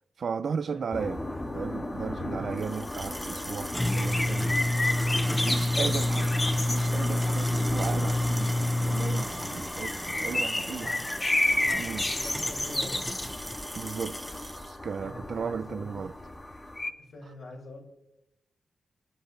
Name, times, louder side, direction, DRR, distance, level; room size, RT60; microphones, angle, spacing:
voice 1, 0.2-1.2 1.5-4.6 5.4-11.0 11.8-12.1 13.7-16.1, right 6 dB, 60° right, 0.5 m, -35 dB
sound 1, 0.9-16.9, left 2 dB, 25° left, 2.2 m, -32 dB
sound 2, 2.6-14.7, left 1 dB, 5° left, 1.3 m, -30 dB
voice 2, 10.7-11.1 11.8-13.0 14.9-16.1 17.0-17.8, left 1 dB, 75° left, 5.6 m, -45 dB
27.5 x 10.0 x 3.4 m
cardioid pair, 90°, 0 cm